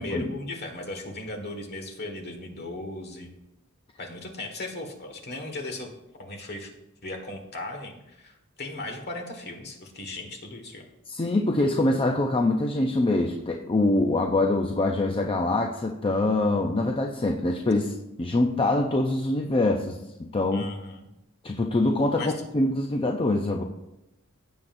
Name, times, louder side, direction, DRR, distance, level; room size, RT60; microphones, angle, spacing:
voice 1, 0.0-3.3 4.0-5.9 6.2-6.7 7.0-10.9 20.5-21.0 22.2-22.3, left 2 dB, 50° left, 4 dB, 1.6 m, -37 dB
voice 2, 11.1-20.7 21.4-23.6, left 2 dB, 25° left, 2 dB, 0.5 m, -24 dB
16.0 x 7.5 x 2.6 m, 0.90 s
head